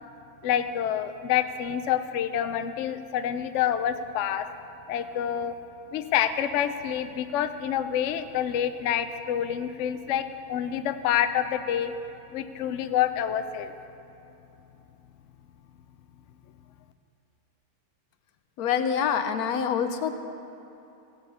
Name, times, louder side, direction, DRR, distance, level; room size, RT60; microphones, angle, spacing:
voice 1, 0.4-4.5 4.9-5.5 5.9-11.9 12.3-13.7, left 10 dB, 65° left, 10 dB, 0.8 m, -27 dB
voice 2, 18.6-20.2, left 7 dB, 85° left, 9 dB, 1.2 m, -26 dB
16.5 x 7.1 x 5.5 m, 2.9 s
omnidirectional pair, 1.6 m